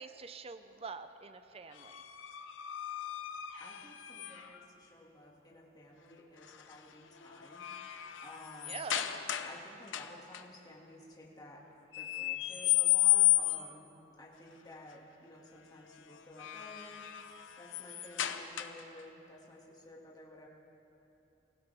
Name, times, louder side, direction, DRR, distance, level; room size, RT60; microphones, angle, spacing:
voice 1, 0.0-2.1 8.6-9.0, right 4 dB, 30° right, 10 dB, 0.5 m, -45 dB
sound 1, 1.7-4.6 6.4-6.7 7.2-9.6 9.9-10.4 11.9-13.8 16.1-19.0, left 14 dB, 80° left, 0.7 m, -33 dB
voice 2, 3.6-8.9 9.4-11.6 11.9-17.1 17.6-20.5, left 1 dB, 20° left, -3 dB, 2.2 m, -53 dB
24.0 x 16.0 x 3.5 m, 3.0 s
head